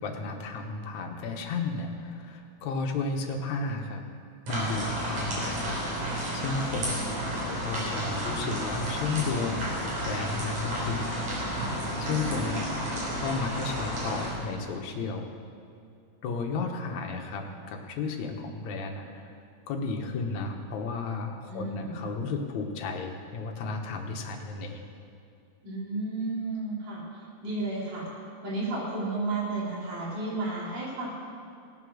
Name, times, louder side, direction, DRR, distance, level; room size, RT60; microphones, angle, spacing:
voice 1, 0.0-4.0 4.5-7.1 7.4-11.3 11.7-15.3 16.2-19.3 19.7-24.8, left 4 dB, 65° left, 3 dB, 2.4 m, -33 dB
sound 1, 4.5-14.3, right 1 dB, 60° right, 4.8 m, -32 dB
voice 2, 21.5-22.0 25.6-28.1 28.4-31.1, right 2 dB, 80° right, -7 dB, 5.3 m, -33 dB
19.0 x 7.5 x 6.4 m, 2.4 s
omnidirectional pair, 3.7 m